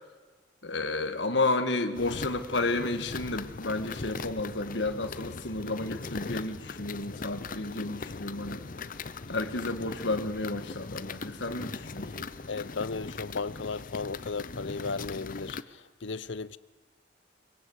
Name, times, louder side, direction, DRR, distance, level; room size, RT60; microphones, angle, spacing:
voice 1, 0.6-8.7 9.3-12.1, left 2 dB, 70° left, 1.7 m, -31 dB
sound 1, 1.9-15.6, left 4 dB, 50° left, 0.8 m, -40 dB
voice 2, 12.5-16.6, left 4 dB, 90° left, 0.8 m, -35 dB
23.5 x 21.5 x 8.1 m
head